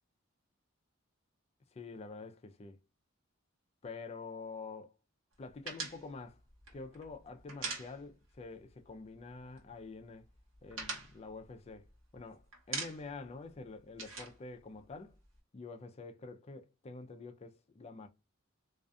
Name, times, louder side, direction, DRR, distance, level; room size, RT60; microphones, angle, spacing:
voice 1, 1.7-2.8 3.8-4.9 5.4-6.4 6.7-10.3 10.6-11.9 12.1-15.2 15.5-18.1, left 3 dB, 30° left, 0.4 m, -47 dB
sound 1, 5.7-8.4 8.7-8.9 9.2-9.9 10.2-12.2 12.5-13.3 13.5-15.4, right 4 dB, 70° right, 0.9 m, -43 dB
2.4 x 2.3 x 2.5 m
head